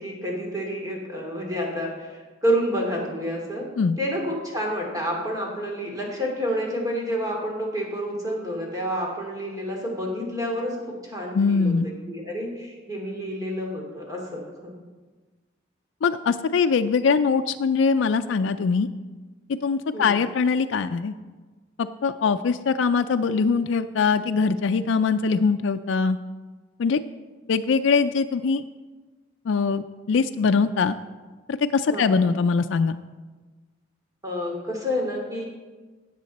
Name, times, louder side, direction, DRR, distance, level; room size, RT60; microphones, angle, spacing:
voice 1, 0.0-2.1 2.4-3.6 4.0-10.8 11.0-11.7 12.1-14.7 19.9-20.2 31.9-32.2 34.2-35.5, equal, 20° right, -1 dB, 2.6 m, -29 dB
voice 2, 11.3-11.9 16.0-18.9 19.6-21.1 21.8-26.2 26.8-27.0 27.5-28.6 29.5-30.9 31.5-33.0, left 5 dB, 80° left, 8 dB, 0.4 m, -22 dB
16.5 x 7.5 x 4.1 m, 1.3 s
head